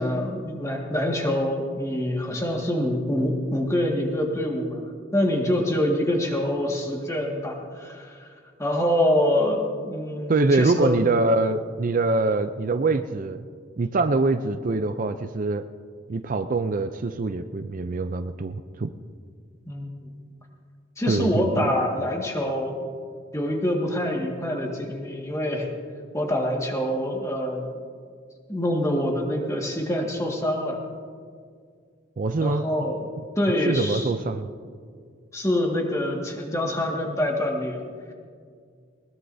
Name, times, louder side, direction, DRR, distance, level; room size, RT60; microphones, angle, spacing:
voice 1, 0.0-4.8 5.1-8.2 8.6-11.0 19.7-19.9 21.0-22.8 23.3-25.7 26.1-27.7 28.5-30.8 32.4-33.1 33.4-34.1 35.3-37.8, left 1 dB, 15° left, 0 dB, 1.8 m, -25 dB
voice 2, 10.3-13.4 13.8-15.6 16.1-18.9 21.1-21.7 32.2-32.6 33.7-34.5, right 3 dB, 45° right, 9 dB, 0.5 m, -24 dB
21.0 x 20.0 x 2.7 m, 2.1 s
head